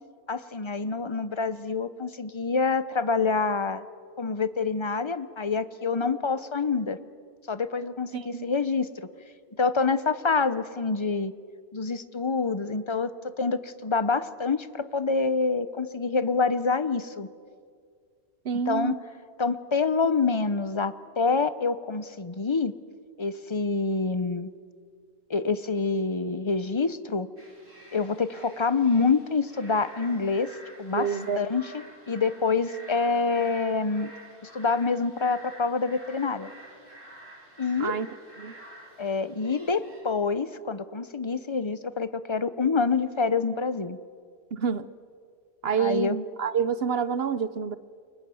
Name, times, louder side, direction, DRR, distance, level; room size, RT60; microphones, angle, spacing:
voice 1, 0.3-3.8 4.2-7.0 7.5-9.1 9.6-11.3 11.7-17.3 18.7-19.0 19.4-22.7 23.2-24.5 25.3-27.3 27.9-30.5 30.8-31.1 31.4-31.6 32.1-34.1 34.5-36.5 37.6-37.9 39.0-44.0 45.8-46.2, left 4 dB, 25° left, 13 dB, 0.8 m, -26 dB
voice 2, 8.1-8.5 18.4-19.0 30.9-31.5 37.8-38.1 38.4-38.5 44.5-44.9 45.6-47.8, right 7 dB, 50° right, 14 dB, 1.0 m, -28 dB
sound 1, 27.4-40.0, right 1 dB, 70° right, 6.1 m, -49 dB
28.5 x 23.5 x 7.8 m, 2.1 s
omnidirectional pair, 1.4 m